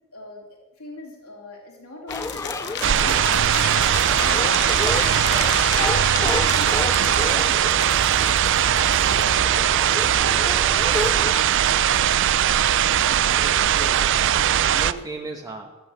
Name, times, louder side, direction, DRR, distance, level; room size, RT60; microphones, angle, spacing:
voice 1, 0.1-0.4 0.8-4.9 6.1-8.0 8.3-9.2, left 1 dB, 85° left, -1 dB, 3.1 m, -41 dB
sound 1, 2.1-9.2, left 8 dB, 55° left, 1.0 m, -33 dB
sound 2, 2.1-11.3, left 2 dB, 15° left, 0.4 m, -32 dB
sound 3, 2.8-14.9, right 10 dB, 55° right, 0.4 m, -20 dB
voice 2, 13.2-14.3 14.5-15.8, right 2 dB, 15° right, 1 dB, 1.1 m, -36 dB
15.0 x 8.0 x 8.0 m, 1.1 s
head